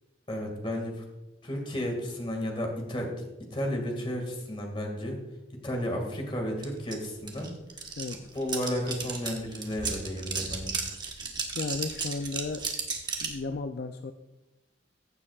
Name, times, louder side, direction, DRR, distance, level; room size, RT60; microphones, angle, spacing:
voice 1, 0.3-1.0 1.4-3.1 3.5-5.2 5.6-7.5 8.3-10.8, equal, 30° left, 2 dB, 2.0 m, -33 dB
sound 1, 6.6-6.7 6.9-13.4, right 4 dB, 25° right, 1.1 m, -34 dB
voice 2, 11.5-12.6 13.2-14.1, left 3 dB, 60° left, 7 dB, 0.4 m, -34 dB
15.0 x 7.6 x 2.4 m, 1.0 s
head